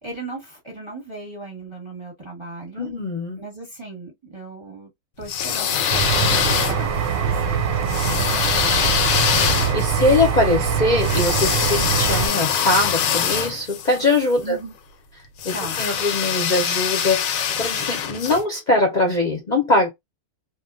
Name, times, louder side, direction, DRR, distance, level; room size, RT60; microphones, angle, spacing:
voice 1, 0.0-2.9 3.4-4.9 5.2-9.3 14.4-14.7 15.5-15.8, right 2 dB, 20° right, 0.9 m, -37 dB
voice 2, 2.8-3.4 8.0-8.1 9.3-14.6 15.4-19.9, left 2 dB, 45° left, 0.6 m, -22 dB
sound 1, 5.2-7.1 7.9-14.2 15.4-18.4, left 8 dB, 70° left, 1.0 m, -23 dB
sound 2, 5.9-12.3, right 7 dB, 60° right, 0.8 m, -23 dB
2.9 x 2.3 x 2.4 m
omnidirectional pair, 1.5 m